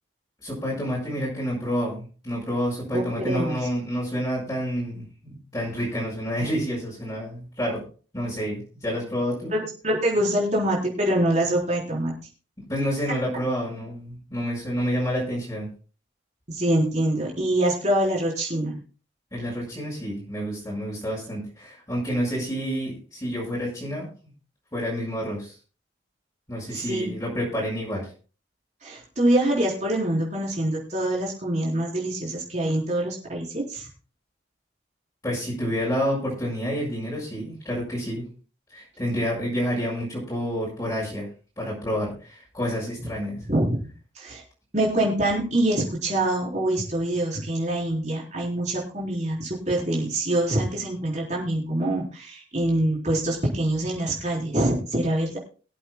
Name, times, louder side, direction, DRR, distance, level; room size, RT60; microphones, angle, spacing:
voice 1, 0.4-7.8 8.1-9.5 12.7-15.7 19.3-24.1 24.7-25.5 26.5-28.1 35.2-38.2 38.7-41.3 41.6-43.4, equal, 20° left, -7 dB, 5.2 m, -29 dB
voice 2, 2.9-3.6 9.5-12.1 16.5-18.8 26.7-27.1 28.8-33.9 43.5-43.8 44.2-44.4 44.7-55.4, right 1 dB, 35° right, -3 dB, 4.1 m, -25 dB
23.5 x 8.0 x 2.3 m, 0.37 s
head